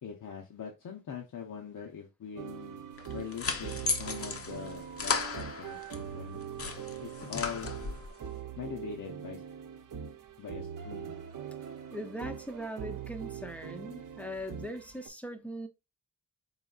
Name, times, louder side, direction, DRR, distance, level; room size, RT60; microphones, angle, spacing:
voice 1, 0.0-2.8 3.1-6.4 7.0-7.7 8.6-9.4 10.4-11.2, left 7 dB, 80° left, 0.8 m, -42 dB
sound 1, 2.4-15.1, right 8 dB, 85° right, 0.7 m, -42 dB
sound 2, 3.0-6.0 6.4-8.1, left 4 dB, 50° left, 0.6 m, -35 dB
voice 2, 11.9-15.7, equal, 5° left, 0.5 m, -40 dB
4.0 x 3.9 x 2.3 m
wide cardioid pair, 145°, 31 cm